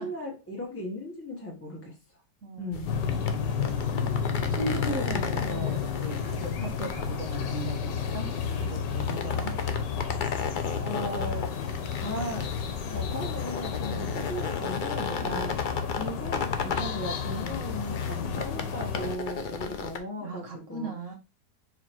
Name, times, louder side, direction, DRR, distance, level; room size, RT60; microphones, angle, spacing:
voice 1, 0.0-2.0 2.6-3.0 5.4-5.7 10.8-11.7 12.0-12.5 12.8-15.6 16.0-20.9, equal, 10° left, 0.9 m, -37 dB
voice 2, 2.4-3.9 4.5-8.3 8.5-9.5 14.0-14.3 15.2-15.5 18.2-18.4 20.2-21.1, right 3 dB, 50° right, 1.3 m, -38 dB
sound 1, 2.7-20.0, left 5 dB, 55° left, 0.5 m, -36 dB
sound 2, 2.9-19.2, left 7 dB, 85° left, 1.5 m, -31 dB
4.9 x 4.3 x 4.4 m
omnidirectional pair, 1.8 m